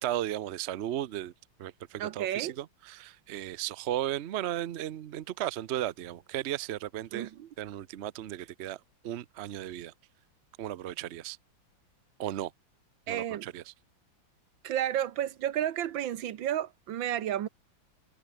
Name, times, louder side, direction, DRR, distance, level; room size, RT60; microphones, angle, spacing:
voice 1, 0.0-1.3 1.6-7.3 7.6-8.8 9.0-9.9 10.6-11.4 12.2-12.5 13.1-13.6, right 12 dB, 70° right, 0.6 m, -35 dB
voice 2, 2.0-2.6 7.1-7.5 13.1-13.5 14.6-17.5, right 11 dB, 90° right, 1.8 m, -32 dB
omnidirectional pair, 2.1 m